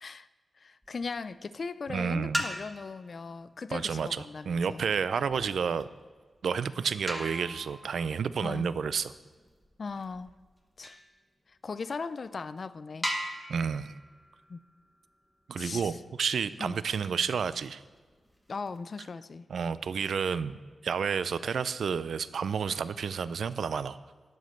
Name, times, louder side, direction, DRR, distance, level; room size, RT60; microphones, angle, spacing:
voice 1, 0.6-4.8 8.4-8.7 9.8-10.3 10.8-11.0 11.5-13.1 14.5-14.6 15.6-16.0 16.6-16.8 18.5-19.5, left 4 dB, 45° left, 14 dB, 0.4 m, -38 dB
sound 1, 0.8-1.3 2.2-3.1 4.7-11.1 11.8-11.9 12.4-12.5 13.0-15.7 17.8-18.8, equal, 5° left, 1.0 m, -40 dB
voice 2, 1.9-2.4 3.7-5.9 6.4-9.1 13.5-13.9 15.5-17.8 19.5-20.6 20.8-24.0, right 6 dB, 85° right, 14 dB, 0.4 m, -30 dB
11.5 x 5.2 x 7.0 m, 1.5 s
wide cardioid pair, 165°, 0 cm